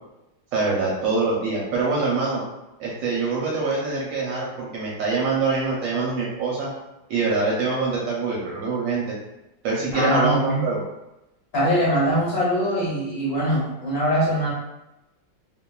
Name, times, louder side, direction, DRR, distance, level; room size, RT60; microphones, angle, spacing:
voice 1, 0.5-2.4 2.8-6.7 7.1-9.2 9.6-10.8, right 3 dB, 75° right, -4 dB, 1.2 m, -24 dB
voice 2, 9.9-10.6 11.5-14.5, equal, 45° left, -7 dB, 0.8 m, -22 dB
3.3 x 2.2 x 2.2 m, 0.93 s
omnidirectional pair, 2.1 m